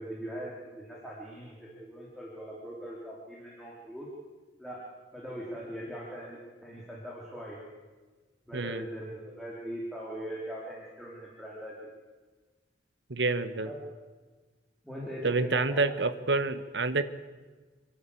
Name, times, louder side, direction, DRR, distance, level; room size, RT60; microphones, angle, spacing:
voice 1, 0.0-4.1 4.6-4.8 5.1-7.6 8.5-11.9 13.6-13.8 14.8-15.9, equal, ahead, -5 dB, 3.1 m, -41 dB
voice 2, 8.5-8.8 13.1-13.7 15.2-17.0, right 3 dB, 75° right, 11 dB, 1.2 m, -28 dB
26.0 x 12.0 x 8.5 m, 1.4 s
head